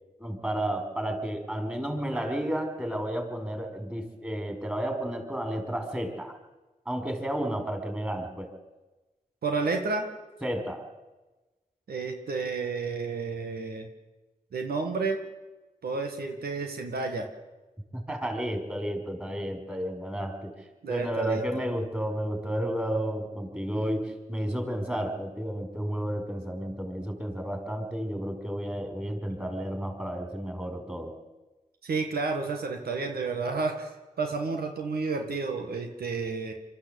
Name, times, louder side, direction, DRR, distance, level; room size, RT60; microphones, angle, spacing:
voice 1, 0.2-6.4 6.9-8.5 10.4-10.9 17.9-31.1, right 1 dB, 10° right, 4 dB, 5.2 m, -32 dB
voice 2, 9.4-10.1 11.9-13.9 14.5-15.2 15.8-17.3 20.8-21.4 31.8-36.5, right 4 dB, 85° right, 4 dB, 1.8 m, -31 dB
23.5 x 13.5 x 8.4 m, 1.1 s
cardioid pair, 45°, 16 cm